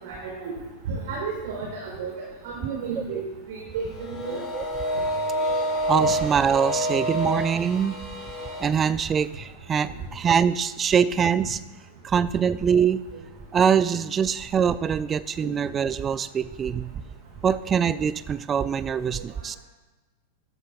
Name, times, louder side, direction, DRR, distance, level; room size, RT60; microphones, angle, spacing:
voice 1, 0.0-0.6 0.9-2.1 2.4-3.2 3.5-4.4 11.4-11.5, right 5 dB, 55° right, -1 dB, 1.9 m, -32 dB
sound 1, 3.9-8.7, equal, 15° left, 2.8 m, -28 dB
voice 2, 5.9-8.0 8.6-11.6 12.0-13.0 13.5-16.9 17.4-19.6, right 7 dB, 25° right, 15 dB, 0.3 m, -23 dB
14.0 x 8.9 x 2.3 m, 1.2 s
figure-of-eight pair, 90°, 0 cm